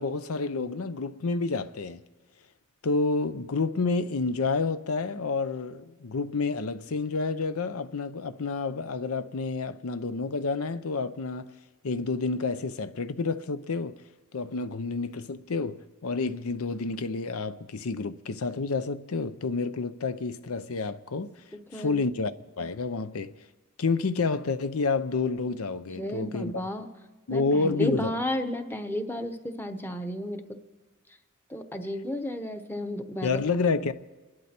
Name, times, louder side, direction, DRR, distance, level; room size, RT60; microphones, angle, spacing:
voice 1, 0.0-2.0 2.8-11.5 11.8-14.0 14.3-21.3 21.7-23.3 23.8-26.5 27.3-28.1 33.2-33.9, left 4 dB, 80° left, 0.7 m, -29 dB
voice 2, 21.5-22.0 25.9-26.9 27.3-30.6 31.5-33.4, left 1 dB, 10° left, 0.9 m, -33 dB
27.5 x 11.5 x 4.4 m
head